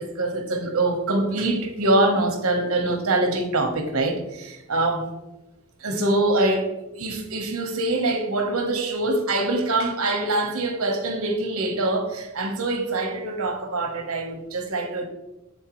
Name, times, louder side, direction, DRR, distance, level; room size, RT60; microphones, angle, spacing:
voice 1, 0.0-5.1 5.8-6.7 7.0-15.1, right 2 dB, 75° right, 1.1 m, -24 dB
8.0 x 4.4 x 3.0 m
head